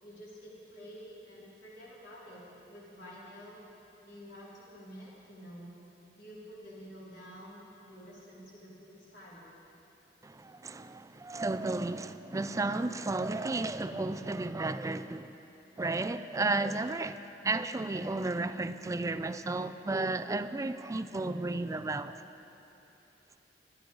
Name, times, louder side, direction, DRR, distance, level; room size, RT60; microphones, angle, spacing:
voice 1, 0.0-2.4 2.7-3.6 4.0-5.7 6.2-9.4, equal, 80° left, 3.5 m, -49 dB
voice 2, 10.2-15.4 15.8-22.2, right 2 dB, 20° right, 0.4 m, -33 dB
22.5 x 12.0 x 3.9 m
head